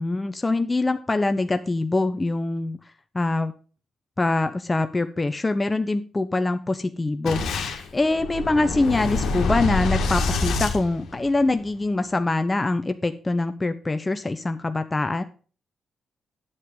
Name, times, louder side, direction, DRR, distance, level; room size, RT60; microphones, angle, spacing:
voice 1, 0.0-2.8 3.1-3.5 4.2-7.4 7.9-15.2, left 2 dB, 25° left, 9 dB, 0.7 m, -24 dB
Boom, 7.3-11.6, left 3 dB, 75° left, 1.7 m, -26 dB
9.0 x 7.8 x 3.7 m, 0.37 s
cardioid pair, 70°, 0 cm